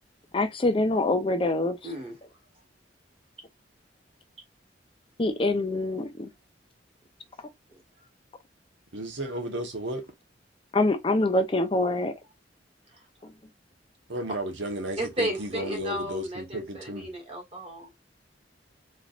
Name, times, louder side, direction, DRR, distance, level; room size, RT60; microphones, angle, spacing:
voice 1, 0.3-1.8 5.2-6.3 10.7-12.1, left 2 dB, 30° left, 0.5 m, -25 dB
voice 2, 1.8-2.2 7.7-7.8 15.0-17.9, right 1 dB, 35° right, 1.5 m, -34 dB
voice 3, 8.9-10.0 14.1-17.1, right 1 dB, 85° right, 1.1 m, -33 dB
4.0 x 3.2 x 2.4 m
head